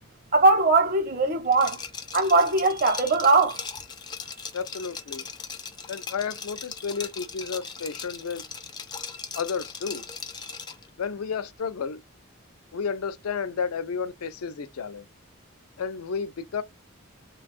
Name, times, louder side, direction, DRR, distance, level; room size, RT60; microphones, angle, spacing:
voice 1, 0.3-1.8 2.1-3.6, right 3 dB, 40° right, 0.7 m, -20 dB
Liquid, 1.5-10.9, left 5 dB, 20° left, 0.3 m, -39 dB
voice 2, 4.5-5.2 5.9-8.4 9.4-10.0 11.0-12.0 12.7-15.1 15.8-16.6, left 6 dB, 85° left, 0.5 m, -32 dB
3.3 x 2.2 x 2.4 m
head